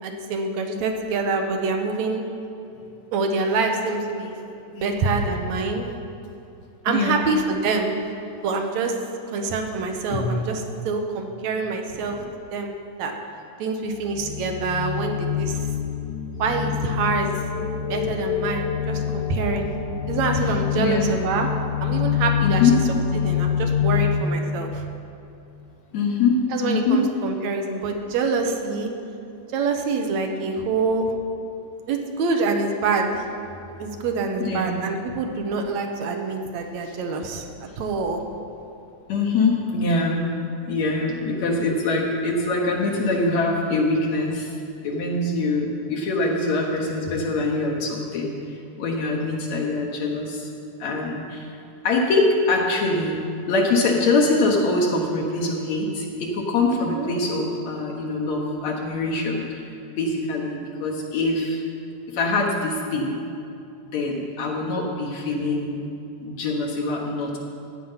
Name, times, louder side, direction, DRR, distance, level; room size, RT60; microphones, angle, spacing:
voice 1, 0.0-2.2 3.1-4.3 4.8-5.9 6.8-7.9 8.4-9.0 9.3-12.2 12.5-13.1 13.6-15.7 16.4-17.3 17.9-19.7 20.1-21.5 21.8-22.6 23.1-24.9 26.5-28.9 29.5-31.1 31.9-33.3 33.8-37.4 37.8-38.2 56.7-57.1, right 4 dB, 70° right, 4 dB, 2.2 m, -26 dB
voice 2, 6.9-7.2 10.1-10.4 12.0-12.1 20.4-21.1 22.4-22.7 25.9-27.0 34.4-34.8 39.1-40.3 40.7-44.6 44.8-50.5 50.8-51.5 51.8-61.6 62.1-63.2 63.9-65.8 66.2-67.4, left 3 dB, 70° left, -2 dB, 2.3 m, -24 dB
sound 1, 14.2-24.3, left 9 dB, 90° left, 2.1 m, -26 dB
14.5 x 9.3 x 5.7 m, 2.6 s
omnidirectional pair, 3.4 m